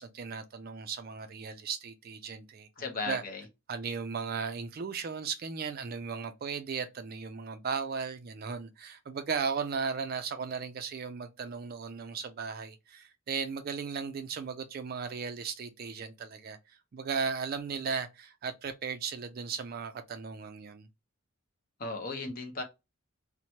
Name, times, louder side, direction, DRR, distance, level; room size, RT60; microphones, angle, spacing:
voice 1, 0.0-2.7 3.1-3.2 3.7-20.9, right 5 dB, 45° right, 0.3 m, -36 dB
voice 2, 2.8-3.5 21.8-22.6, left 3 dB, 40° left, 0.6 m, -36 dB
2.9 x 2.1 x 2.7 m
head